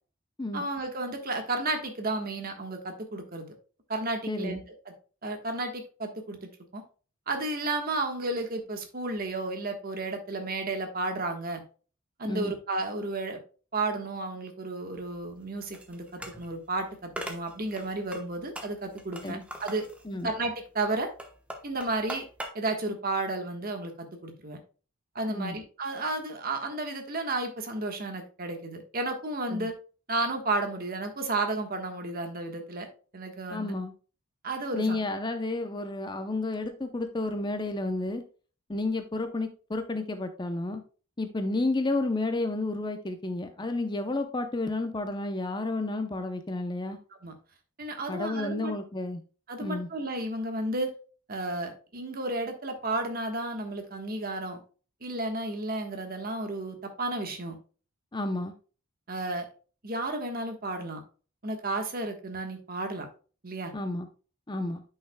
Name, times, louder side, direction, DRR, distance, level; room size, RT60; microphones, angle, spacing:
voice 1, 0.5-3.5 3.9-4.6 5.2-6.4 6.7-6.8 7.3-11.6 12.2-13.4 13.7-19.9 20.2-21.1 21.6-22.3 22.5-24.6 25.1-29.7 30.1-32.9 33.1-33.8 34.4-35.0 47.2-47.3 47.8-48.7 49.5-50.9 51.3-54.6 55.0-57.6 59.1-59.5 59.8-61.0 61.4-63.1 63.4-63.7, right 2 dB, 45° right, 5 dB, 1.3 m, -32 dB
voice 2, 4.3-4.6 12.2-12.5 19.2-19.4 20.0-20.3 25.3-25.6 29.5-29.7 33.5-33.9 34.7-38.2 38.7-40.8 41.2-47.0 48.1-49.2 49.6-49.9 58.1-58.5 63.7-64.1 64.5-64.8, left 2 dB, 20° left, 8 dB, 0.6 m, -31 dB
sound 1, 14.9-22.5, equal, 5° right, 0.9 m, -42 dB
9.9 x 5.6 x 2.2 m, 0.37 s
head